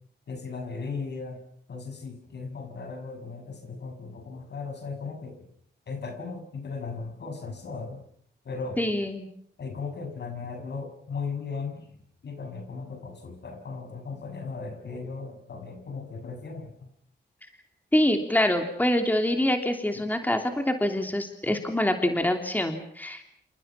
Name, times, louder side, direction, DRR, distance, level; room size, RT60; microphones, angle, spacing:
voice 1, 0.3-1.4 1.7-5.5 5.9-8.0 8.4-8.8 9.6-12.0 12.2-16.9 19.9-20.1, left 4 dB, 65° left, 6 dB, 6.5 m, -37 dB
voice 2, 8.8-9.3 17.9-23.2, left 1 dB, 10° left, 5 dB, 3.1 m, -25 dB
28.5 x 27.0 x 5.9 m, 0.65 s
wide cardioid pair, 100°, 19 cm